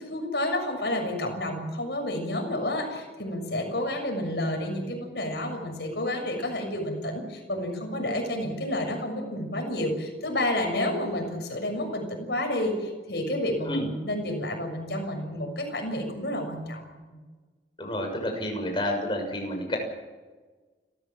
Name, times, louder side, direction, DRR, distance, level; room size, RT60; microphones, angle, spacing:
voice 1, 0.0-16.9, left 1 dB, 65° left, 3 dB, 6.7 m, -30 dB
voice 2, 17.8-19.8, left 1 dB, 25° left, 2 dB, 6.6 m, -29 dB
29.5 x 14.5 x 7.5 m, 1.3 s
head